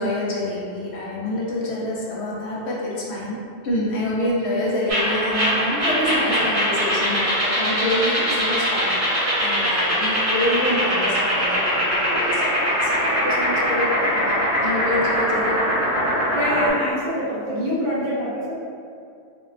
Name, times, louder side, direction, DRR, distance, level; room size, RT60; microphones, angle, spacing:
voice 1, 0.0-3.4 3.6-15.8, left 1 dB, 80° left, -5 dB, 0.9 m, -27 dB
sound 1, 4.9-16.7, equal, 85° right, 1.3 m, -22 dB
voice 2, 16.3-18.6, equal, 55° right, -8 dB, 0.6 m, -25 dB
3.6 x 2.3 x 2.4 m, 2.4 s
omnidirectional pair, 1.1 m